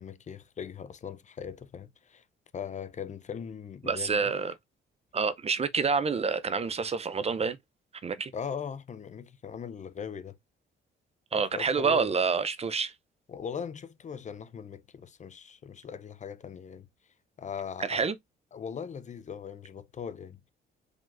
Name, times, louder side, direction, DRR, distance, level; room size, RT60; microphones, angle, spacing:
voice 1, 0.0-2.2 2.5-4.3 8.3-10.4 11.3-12.2 13.3-16.9 17.4-18.1 18.5-20.5, left 7 dB, 35° left, 0.5 m, -40 dB
voice 2, 3.8-4.5 5.1-7.6 8.0-8.3 11.3-12.9 17.8-18.1, right 5 dB, 30° right, 0.5 m, -28 dB
4.9 x 3.7 x 2.5 m
cardioid pair, 90°, 20 cm